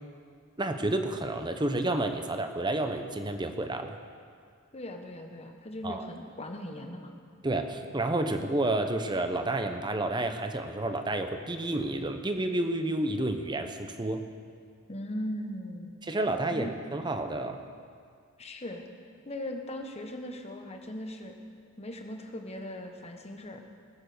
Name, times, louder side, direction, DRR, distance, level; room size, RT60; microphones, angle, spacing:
voice 1, 0.6-4.0 5.8-6.1 7.4-14.2 16.0-17.6, right 2 dB, 20° right, 7 dB, 0.8 m, -30 dB
voice 2, 4.7-7.1 14.9-15.9 16.5-16.7 18.4-18.8 19.2-21.3 21.8-23.6, left 1 dB, 30° left, 4 dB, 1.2 m, -39 dB
20.0 x 7.4 x 6.7 m, 2.1 s
head